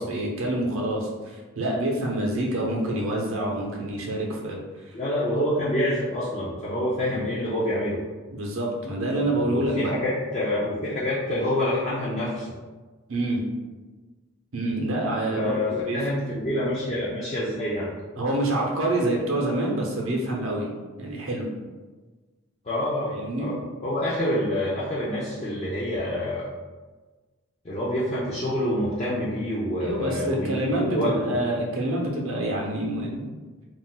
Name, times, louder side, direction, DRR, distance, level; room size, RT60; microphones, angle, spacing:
voice 1, 0.0-4.6 7.1-7.3 8.3-9.9 13.1-13.4 14.5-16.0 18.2-20.7 21.0-21.5 23.1-23.5 29.8-33.3, right 1 dB, 70° right, -1 dB, 0.6 m, -27 dB
voice 2, 4.9-8.0 9.5-12.5 15.3-17.9 22.6-26.5 27.6-31.4, left 1 dB, 30° left, -8 dB, 0.4 m, -27 dB
2.4 x 2.1 x 3.7 m, 1.3 s
head